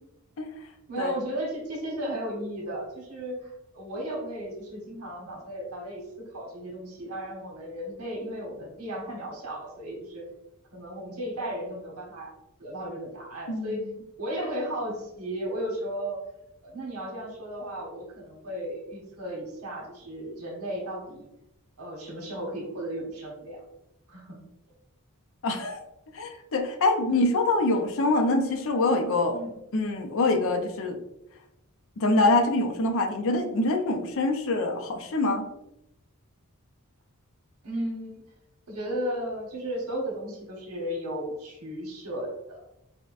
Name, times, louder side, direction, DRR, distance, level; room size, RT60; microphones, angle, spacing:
voice 1, 0.9-10.2 10.7-12.3 12.6-13.9 14.2-16.3 16.6-21.3 21.8-23.6 24.1-24.4 29.3-29.6 37.6-38.2 38.7-42.7, right 1 dB, 80° right, 0 dB, 1.1 m, -35 dB
voice 2, 13.5-13.9 25.4-25.8 26.1-29.4 29.7-31.0 32.0-35.4, left 2 dB, 65° left, 4 dB, 0.5 m, -25 dB
5.2 x 2.2 x 2.4 m, 0.87 s
head